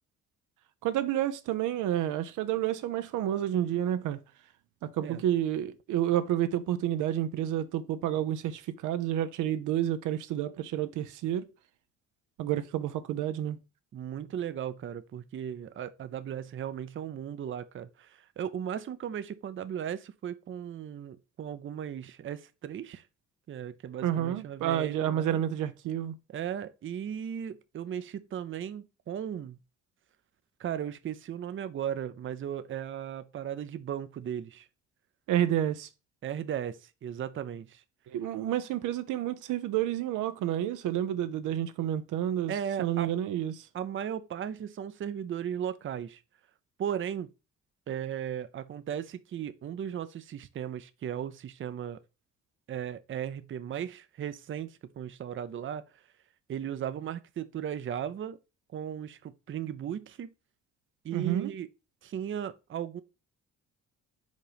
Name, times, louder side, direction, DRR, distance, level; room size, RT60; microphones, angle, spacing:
voice 1, 0.8-4.2 4.8-11.5 12.4-13.6 24.0-26.2 35.3-35.9 38.1-42.5 42.8-43.7 61.1-61.5, right 11 dB, 85° right, 0.7 m, -30 dB
voice 2, 13.9-23.1 23.5-25.4 26.3-29.6 30.6-34.7 36.2-37.8 42.5-43.1 43.7-46.2 46.8-47.3 47.9-52.0 52.7-56.0 56.5-58.4 58.7-60.3 61.0-61.7 62.0-63.0, right 9 dB, 40° right, 0.6 m, -36 dB
5.2 x 3.8 x 5.0 m
cardioid pair, 90°, 30 cm